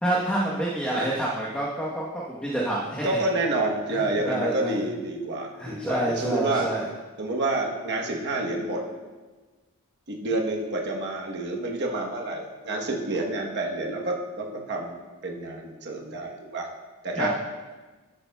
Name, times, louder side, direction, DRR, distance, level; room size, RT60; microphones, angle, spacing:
voice 1, 0.0-3.1 3.9-4.8 5.6-6.8 17.2-17.3, right 1 dB, 5° left, -6 dB, 1.0 m, -28 dB
voice 2, 3.0-6.7 7.2-8.8 10.1-16.7 17.0-17.3, right 2 dB, 50° right, 0 dB, 1.1 m, -28 dB
12.5 x 8.8 x 2.3 m, 1.3 s
head